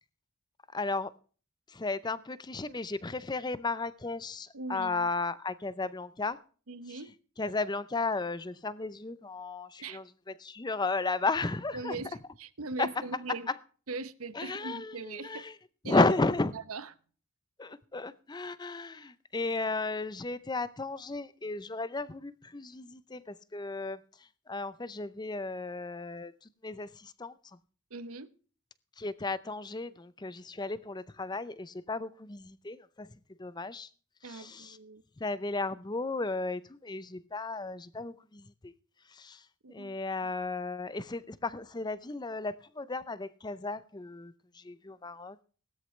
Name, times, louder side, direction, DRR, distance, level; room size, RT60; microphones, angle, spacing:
voice 1, 0.7-1.1 1.7-6.4 6.9-7.0 7.4-12.1 12.8-12.9 13.5-13.6 14.3-15.5 15.8-16.5 17.6-24.0 24.5-27.3 29.0-33.1 33.4-33.9 34.2-34.8 35.2-38.7 39.1-39.4 39.7-45.4, left 3 dB, 20° left, 0.6 m, -34 dB
voice 2, 4.5-5.1 6.7-7.1 9.8-10.0 11.7-13.5 13.9-15.4 15.8-16.1 16.5-16.9 27.9-28.3 34.2-35.0 39.6-39.9, right 3 dB, 80° right, 1.0 m, -40 dB
17.5 x 13.0 x 3.3 m
head